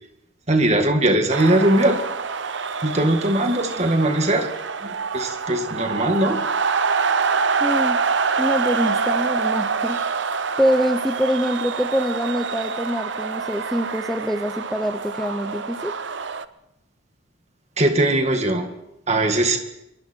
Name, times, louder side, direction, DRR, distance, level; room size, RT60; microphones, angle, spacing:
voice 1, 0.5-2.0 2.8-4.5 4.8-6.4 17.8-18.7 19.1-19.6, right 1 dB, 35° right, 5 dB, 2.0 m, -20 dB
sound 1, 1.3-16.4, right 5 dB, 60° right, 0.8 m, -26 dB
voice 2, 7.6-8.0 8.4-10.0 10.6-15.9, equal, ahead, 6 dB, 0.8 m, -24 dB
26.5 x 23.0 x 4.6 m, 0.87 s
head